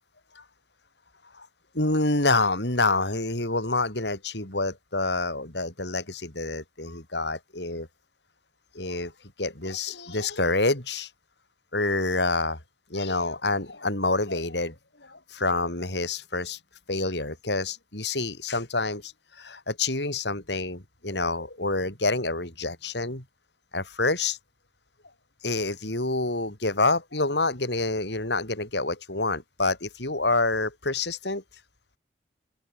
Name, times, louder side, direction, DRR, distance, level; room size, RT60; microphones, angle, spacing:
voice 1, 1.7-7.9 8.7-9.1 9.4-11.1 11.7-12.6 12.9-14.8 15.0-16.6 16.9-23.2 23.7-24.4 25.4-31.4, left 2 dB, 75° left, 5.8 m, -27 dB
open air
head